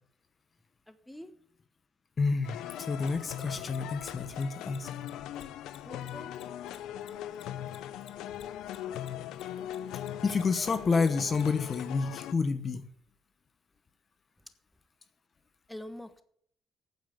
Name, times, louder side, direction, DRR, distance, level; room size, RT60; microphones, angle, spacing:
voice 1, 0.9-1.3 4.0-4.4 5.8-6.3 15.7-16.2, left 1 dB, 5° left, 10 dB, 1.3 m, -46 dB
voice 2, 2.2-4.9 10.2-12.9, left 4 dB, 40° left, 11 dB, 1.0 m, -29 dB
sound 1, 2.4-12.3, left 11 dB, 90° left, 0.6 m, -40 dB
Mechanisms, 3.0-9.8 10.0-11.8, left 9 dB, 70° left, 1.3 m, -53 dB
9.2 x 7.4 x 8.8 m, 0.63 s
cardioid pair, 90°, 0 cm